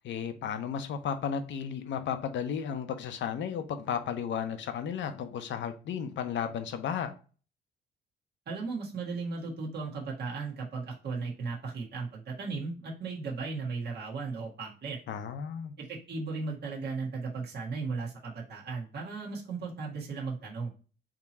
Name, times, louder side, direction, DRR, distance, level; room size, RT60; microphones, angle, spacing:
voice 1, 0.0-7.1 15.1-15.7, left 7 dB, 70° left, 0.7 m, -34 dB
voice 2, 8.5-15.0 15.8-20.7, right 4 dB, 55° right, 1.5 m, -36 dB
3.6 x 2.9 x 4.2 m
cardioid pair, 90°, 20 cm